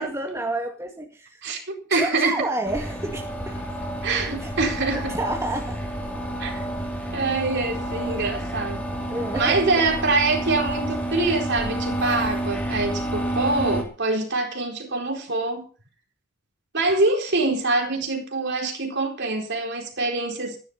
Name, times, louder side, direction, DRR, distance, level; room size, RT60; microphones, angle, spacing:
voice 1, 0.0-1.4 1.9-3.7 4.4-4.5 4.9-5.8 9.1-9.6, right 2 dB, 15° right, 1 dB, 2.2 m, -30 dB
voice 2, 1.4-2.5 4.0-5.2 6.4-6.6 7.1-8.8 9.3-15.6 16.7-20.6, right 3 dB, 50° right, 3 dB, 4.4 m, -24 dB
sound 1, 2.6-13.8, right 1 dB, 5° left, 3.6 m, -29 dB
15.0 x 11.5 x 5.8 m, 0.38 s
head